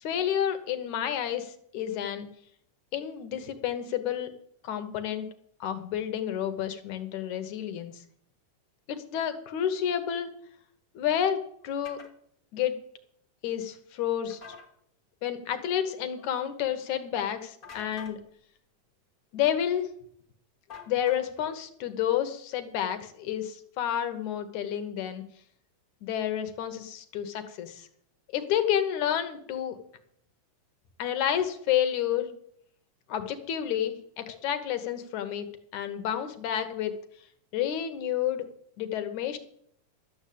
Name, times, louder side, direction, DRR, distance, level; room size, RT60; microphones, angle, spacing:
voice 1, 0.0-2.3 2.9-4.3 4.6-5.3 5.6-7.9 8.9-10.3 11.0-11.4 11.6-12.0 12.5-12.7 13.4-14.4 15.2-18.2 19.3-19.9 20.9-25.2 26.0-27.9 28.3-29.8 31.0-32.3 33.1-35.5 35.7-36.9 37.5-38.5 38.8-39.4, left 10 dB, 70° left, 9 dB, 2.4 m, -30 dB
sound 1, 11.8-12.1 14.3-14.7 17.6-18.2 20.7-21.5, left 6 dB, 40° left, 1.4 m, -46 dB
12.5 x 7.2 x 8.5 m, 0.68 s
omnidirectional pair, 3.8 m